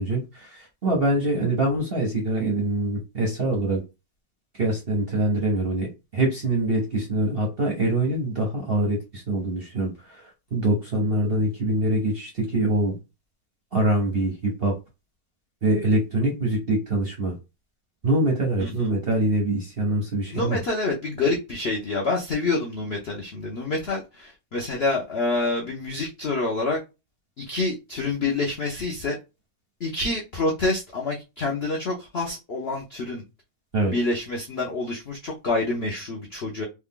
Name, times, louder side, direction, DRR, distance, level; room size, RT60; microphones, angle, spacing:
voice 1, 0.0-3.8 4.5-5.9 6.1-13.0 13.7-14.7 15.6-17.4 18.0-20.6 33.7-33.9, right 1 dB, 50° right, 0 dB, 0.7 m, -24 dB
voice 2, 18.6-18.9 20.3-26.8 27.4-29.2 29.8-33.2 33.9-36.6, left 3 dB, 75° left, -1 dB, 0.5 m, -27 dB
3.2 x 2.3 x 3.6 m, 0.26 s
omnidirectional pair, 2.1 m